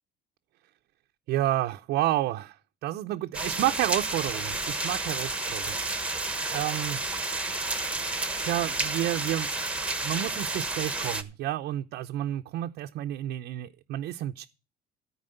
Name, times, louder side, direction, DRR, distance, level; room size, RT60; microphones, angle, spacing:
voice 1, 1.3-2.6 2.8-5.6 6.5-7.0 8.4-9.5 10.0-14.5, right 14 dB, 80° right, 0.7 m, -30 dB
sound 1, 3.3-11.2, right 2 dB, 5° right, 1.2 m, -31 dB
13.5 x 4.7 x 7.9 m
cardioid pair, 110°, 17 cm